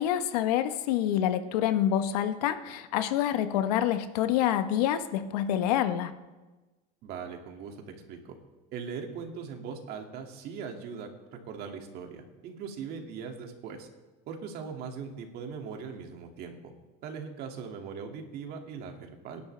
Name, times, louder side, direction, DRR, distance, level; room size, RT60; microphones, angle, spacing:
voice 1, 0.0-6.1, left 11 dB, 90° left, 9 dB, 1.1 m, -27 dB
voice 2, 7.0-8.4 8.7-11.1 11.4-13.9 14.3-16.7 17.0-19.4, right 6 dB, 55° right, 3 dB, 2.4 m, -40 dB
26.0 x 11.0 x 3.4 m, 1.2 s
supercardioid pair, 130°, 19 cm